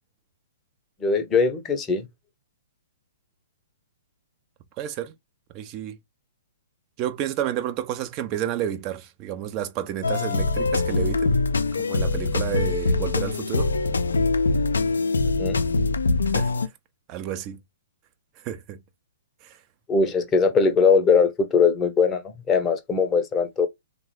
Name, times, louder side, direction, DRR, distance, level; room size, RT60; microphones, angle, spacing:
voice 1, 1.0-2.1 15.4-15.6 19.9-23.7, left 5 dB, 15° left, 0.7 m, -21 dB
voice 2, 4.8-5.1 5.5-6.0 7.0-11.4 11.9-13.7 16.3-16.5 17.1-17.6 18.4-18.8 19.4-19.6, right 11 dB, 30° right, 0.5 m, -30 dB
sound 1, 10.0-16.7, left 3 dB, 70° left, 0.4 m, -23 dB
3.5 x 2.1 x 3.0 m
figure-of-eight pair, 120°, 0 cm